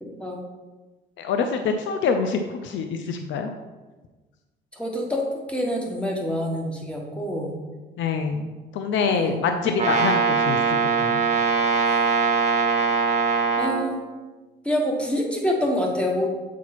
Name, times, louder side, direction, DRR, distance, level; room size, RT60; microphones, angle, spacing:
voice 1, 0.0-0.4 4.8-5.2 5.5-7.6 9.1-9.4 13.6-14.0 14.6-16.3, equal, 5° left, 0 dB, 1.5 m, -26 dB
voice 2, 1.2-3.5 8.0-8.4 8.7-11.2, left 5 dB, 75° left, 6 dB, 0.6 m, -25 dB
Brass instrument, 9.7-13.8, right 4 dB, 35° right, 1.1 m, -21 dB
7.1 x 4.6 x 4.1 m, 1.2 s
cardioid pair, 90°, 20 cm